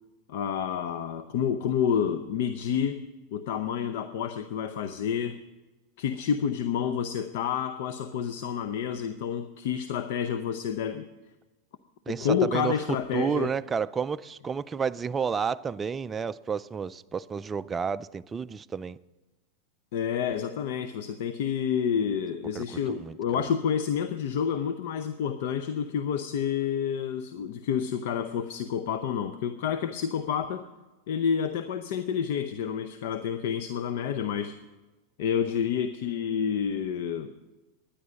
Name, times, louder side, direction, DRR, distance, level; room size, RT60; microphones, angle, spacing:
voice 1, 0.3-3.0 3.3-5.4 6.0-11.1 12.1-13.5 19.9-30.6 31.1-34.6 35.2-37.3, left 8 dB, 65° left, 0.6 m, -29 dB
voice 2, 12.1-12.8 13.1-19.0 22.5-23.4, right 6 dB, 15° right, 0.3 m, -31 dB
12.0 x 10.0 x 6.3 m
supercardioid pair, 130°, 0 cm